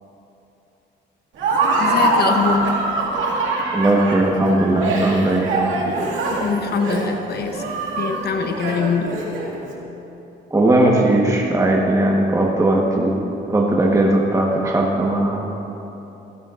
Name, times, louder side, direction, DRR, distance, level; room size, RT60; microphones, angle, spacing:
Laughter, 1.4-9.6, right 2 dB, 80° right, 2.2 m, -23 dB
voice 1, 1.8-2.7 6.3-9.2, left 5 dB, 55° left, 5 dB, 1.0 m, -23 dB
voice 2, 3.7-5.5 10.5-13.2 13.5-15.4, right 1 dB, 15° right, -1 dB, 1.3 m, -18 dB
15.0 x 15.0 x 2.5 m, 3.0 s
cardioid pair, 90°, 20 cm